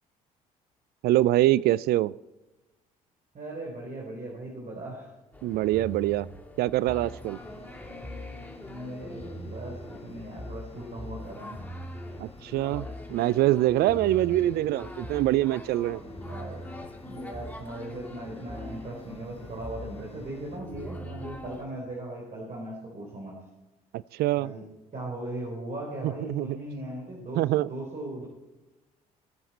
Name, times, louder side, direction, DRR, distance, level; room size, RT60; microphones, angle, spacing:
voice 1, 1.0-2.1 5.4-6.3 6.6-7.4 12.2-16.0 23.9-24.5 26.0-26.5 27.3-27.7, right 15 dB, 60° right, 20 dB, 0.4 m, -24 dB
voice 2, 3.3-5.1 8.6-11.6 14.3-14.5 16.0-16.7 17.0-23.4 24.4-28.3, right 1 dB, 45° right, -2 dB, 4.2 m, -38 dB
New Orleans Street Life, 5.3-21.6, equal, 10° left, 2.9 m, -41 dB
sound 1, 7.2-20.6, left 6 dB, 35° left, 1.2 m, -53 dB
20.5 x 7.8 x 4.3 m, 1.1 s
hypercardioid pair, 55°, 18 cm